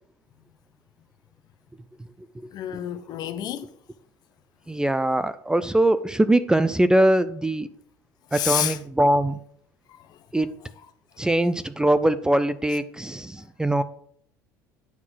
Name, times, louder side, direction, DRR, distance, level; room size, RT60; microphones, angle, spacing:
voice 1, 2.5-3.7 8.3-8.8, left 12 dB, 55° left, 0.7 m, -28 dB
voice 2, 4.7-7.7 8.3-9.4 10.3-10.6 11.2-13.8, right 1 dB, 10° right, 0.4 m, -22 dB
9.5 x 3.9 x 6.2 m
supercardioid pair, 90°, 9 cm